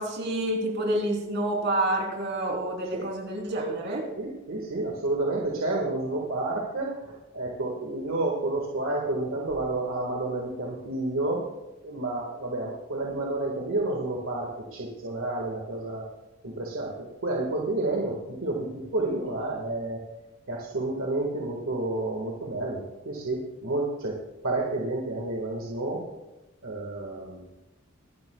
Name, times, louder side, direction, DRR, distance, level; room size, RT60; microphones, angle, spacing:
voice 1, 0.0-4.0, right 1 dB, 50° right, -1 dB, 3.3 m, -28 dB
voice 2, 4.2-11.5 11.8-16.1 16.4-20.0 20.5-24.2 24.4-26.0 26.6-27.4, right 2 dB, 70° right, -2 dB, 1.7 m, -30 dB
23.5 x 11.0 x 2.3 m, 1.0 s
head